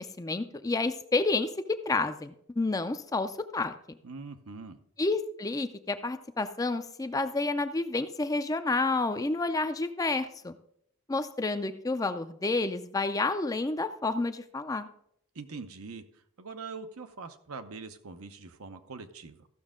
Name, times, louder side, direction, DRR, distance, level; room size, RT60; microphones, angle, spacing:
voice 1, 0.0-1.5 1.9-3.7 5.0-10.6 11.1-14.9, left 3 dB, 15° left, 10 dB, 0.4 m, -30 dB
voice 2, 4.0-4.8 15.3-19.5, right 4 dB, 80° right, 9 dB, 0.8 m, -43 dB
14.5 x 6.3 x 3.7 m, 0.68 s
head